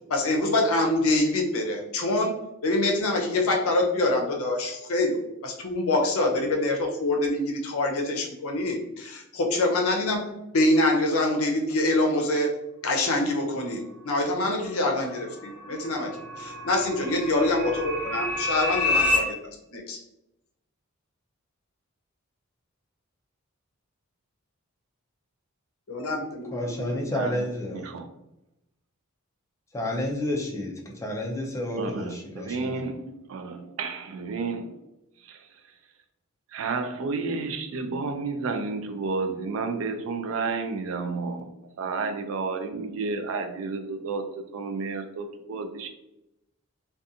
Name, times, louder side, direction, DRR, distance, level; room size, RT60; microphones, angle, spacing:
voice 1, 0.1-2.4 2.6-10.3 10.5-12.6 12.8-16.1 16.4-19.3 19.7-20.0 25.9-27.0, left 2 dB, 75° left, 2 dB, 0.6 m, -25 dB
sound 1, 15.0-19.2, left 2 dB, 5° right, 0.9 m, -29 dB
voice 2, 26.5-27.9 29.7-32.7, left 1 dB, 15° left, -1 dB, 0.4 m, -30 dB
voice 3, 27.1-27.4 27.7-28.1 31.8-34.8 35.2-35.6 36.5-41.5 41.8-45.9, right 4 dB, 65° right, 7 dB, 0.3 m, -31 dB
2.5 x 2.3 x 2.6 m, 0.87 s
head